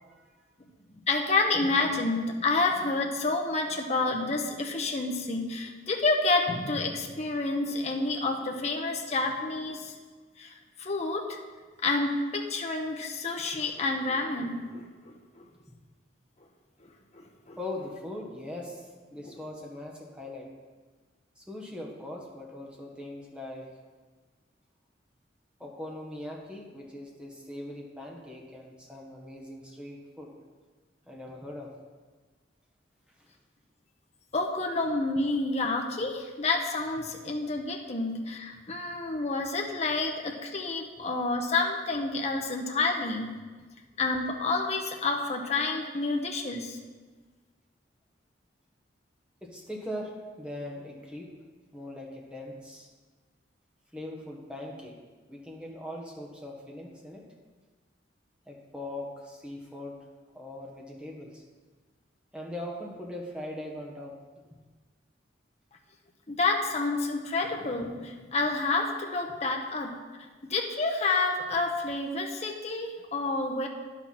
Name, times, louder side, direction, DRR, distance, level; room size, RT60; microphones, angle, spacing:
voice 1, 1.1-9.9 10.4-11.4 11.8-15.4 17.1-17.6 19.2-19.4 34.3-43.3 44.0-46.8 66.3-70.0 70.5-73.7, left 3 dB, 35° left, 2 dB, 0.9 m, -29 dB
voice 2, 17.6-20.5 21.4-23.7 25.6-30.3 31.1-31.7 49.4-51.3 51.7-52.9 53.9-55.0 55.3-57.2 58.5-60.0 60.3-61.4 62.3-64.2, left 1 dB, 5° right, -1 dB, 1.4 m, -40 dB
10.5 x 6.3 x 5.9 m, 1.4 s
head